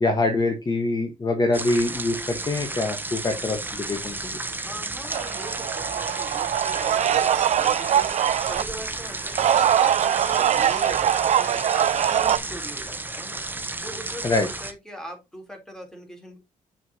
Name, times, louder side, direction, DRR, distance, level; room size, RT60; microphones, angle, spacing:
voice 1, 0.0-4.4 14.2-14.5, left 2 dB, 30° left, 5 dB, 1.5 m, -24 dB
sound 1, 1.5-14.7, right 2 dB, 15° right, 1.2 m, -33 dB
voice 2, 4.6-16.4, equal, 5° left, 2 dB, 3.8 m, -41 dB
sound 2, 5.1-8.6 9.2-12.4, right 10 dB, 55° right, 0.5 m, -22 dB
7.2 x 6.5 x 3.0 m, 0.20 s
cardioid pair, 85°, 14 cm